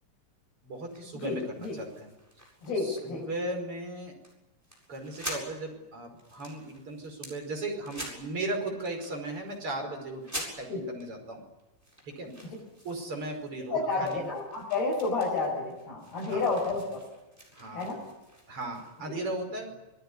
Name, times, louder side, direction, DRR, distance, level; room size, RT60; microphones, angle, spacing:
voice 1, 0.6-2.1 2.8-4.1 4.9-11.4 12.1-12.3 12.8-14.2 16.3-16.4 17.5-17.9 18.5-19.7, right 2 dB, 35° right, 3 dB, 5.9 m, -37 dB
sound 1, 0.8-3.3 3.6-3.8 4.2-4.3 4.6-5.5 5.9-7.3 7.8-8.4 8.8-9.6 10.2-11.0 11.6-13.7 14.0-19.1, equal, 5° right, 7.3 m, -45 dB
voice 2, 1.2-1.8 2.6-3.3 10.7-10.8 12.4-12.6 13.7-17.0 17.7-18.0 19.1-19.2, left 3 dB, 80° left, -4 dB, 7.9 m, -30 dB
27.5 x 20.0 x 9.7 m, 1.0 s
omnidirectional pair, 4.4 m